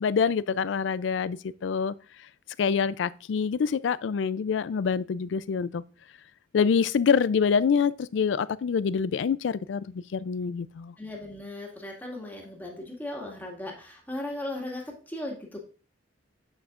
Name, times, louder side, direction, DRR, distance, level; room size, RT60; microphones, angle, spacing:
voice 1, 0.0-1.9 2.6-5.8 6.5-10.9, left 6 dB, 75° left, 0.4 m, -26 dB
voice 2, 11.0-15.7, left 1 dB, 10° left, 1.9 m, -37 dB
8.1 x 7.7 x 2.5 m
head